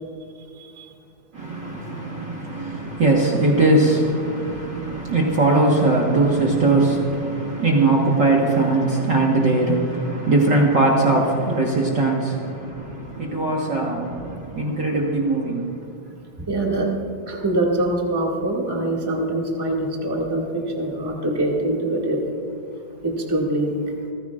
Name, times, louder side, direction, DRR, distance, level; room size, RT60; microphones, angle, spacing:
voice 1, 0.5-0.9 16.5-17.0 17.3-22.3 23.0-23.9, right 1 dB, 10° right, -2 dB, 1.7 m, -24 dB
voice 2, 1.3-15.8, right 2 dB, 45° right, -3 dB, 1.8 m, -20 dB
29.5 x 15.0 x 2.5 m, 2.7 s
omnidirectional pair, 3.3 m